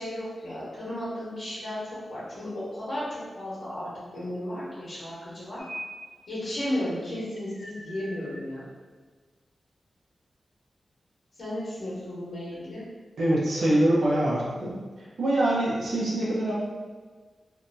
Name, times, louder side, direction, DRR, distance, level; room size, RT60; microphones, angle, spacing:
voice 1, 0.0-5.6 6.3-8.7 11.4-12.8, left 1 dB, 75° left, -11 dB, 1.1 m, -34 dB
sound 1, 5.6-6.1 6.4-8.4, equal, 40° left, 0.5 m, -42 dB
voice 2, 13.2-14.7 15.2-16.5, right 1 dB, 80° right, -6 dB, 0.7 m, -24 dB
2.8 x 2.2 x 2.6 m, 1.4 s
cardioid pair, 45°, 0 cm